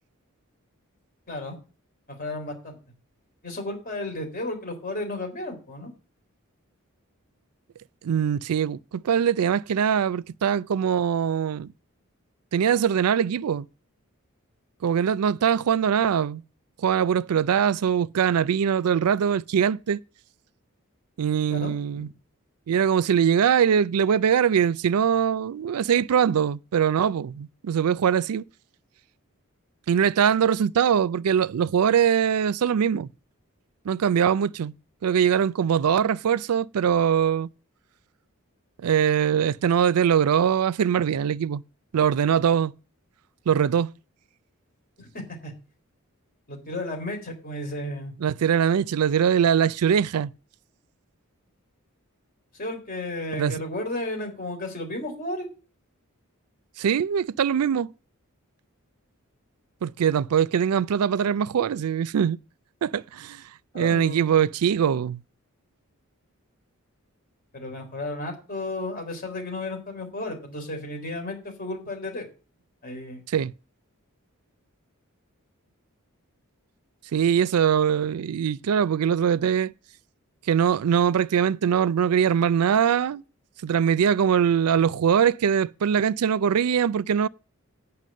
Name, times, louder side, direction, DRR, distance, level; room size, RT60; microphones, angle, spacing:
voice 1, 2.2-2.8 3.4-5.9 21.5-22.1 45.0-45.5 46.5-48.1 52.5-55.5 63.7-64.4 67.5-72.3 72.8-73.2, left 1 dB, 40° left, 3.7 m, -33 dB
voice 2, 8.0-11.7 12.5-13.7 14.8-16.4 16.8-20.0 21.2-22.1 22.7-28.4 29.9-33.1 33.9-34.7 35.0-37.5 38.8-41.6 41.9-42.7 43.5-43.9 48.2-50.3 53.3-53.5 56.8-57.9 59.8-62.4 62.8-63.4 63.7-65.2 73.3-73.5 77.1-79.7 80.5-83.2 83.6-87.3, right 8 dB, 85° right, 0.4 m, -22 dB
9.2 x 5.8 x 7.4 m
head